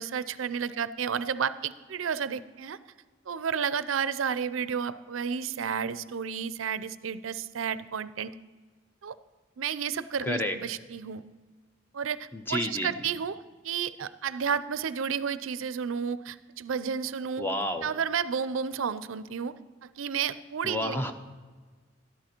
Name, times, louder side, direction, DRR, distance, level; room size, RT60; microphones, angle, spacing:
voice 1, 0.0-2.8 3.3-8.3 9.0-9.2 9.6-11.2 11.9-13.4 13.6-17.4 17.8-19.5 19.8-21.1, right 7 dB, 90° right, 15 dB, 0.5 m, -31 dB
voice 2, 10.2-10.6 12.3-12.9 17.4-17.9 20.6-21.1, left 1 dB, 10° left, 6 dB, 0.7 m, -30 dB
13.0 x 11.5 x 4.4 m, 1.4 s
head